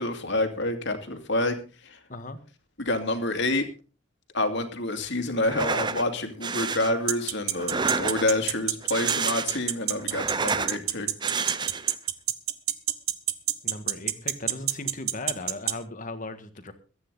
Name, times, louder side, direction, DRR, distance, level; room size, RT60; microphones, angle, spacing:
voice 1, 0.0-1.6 1.8-2.0 2.8-3.7 4.3-11.1, left 2 dB, 55° left, 7 dB, 2.5 m, -28 dB
sound 1, 5.4-6.0 6.4-6.9 7.6-8.4 8.8-9.7 10.0-10.8 11.2-12.0, right 4 dB, 20° right, 0.6 m, -29 dB
sound 2, 7.1-15.7, right 13 dB, 90° right, 1.2 m, -25 dB
voice 2, 13.6-16.7, left 2 dB, 40° left, 9 dB, 1.7 m, -37 dB
22.5 x 9.7 x 4.0 m, 0.35 s
head